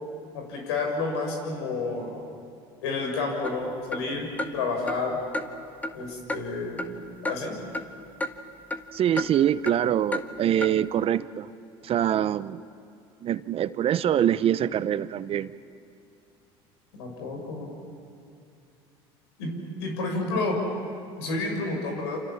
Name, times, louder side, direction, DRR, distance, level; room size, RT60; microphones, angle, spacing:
voice 1, 0.3-2.3 2.8-5.2 5.9-6.9 7.2-7.6 16.9-17.7 19.4-19.5 19.8-20.6 21.2-22.2, left 3 dB, 85° left, 2 dB, 6.7 m, -30 dB
sound 1, 3.4-3.6 3.9-4.0 4.4-4.5 4.9-5.0 5.3-5.4 5.8-6.0 6.3-6.4 6.8-7.0 7.3-7.4 7.7-7.9 8.2-8.3 8.7-8.8 9.2-9.3 9.7-9.8 10.1-10.3 10.6-10.7, left 1 dB, 10° left, 1.7 m, -31 dB
voice 2, 8.9-11.5 11.8-12.6 13.2-15.5, right 10 dB, 45° right, 15 dB, 0.8 m, -24 dB
28.5 x 27.0 x 7.4 m, 2.5 s
supercardioid pair, 90°, 13 cm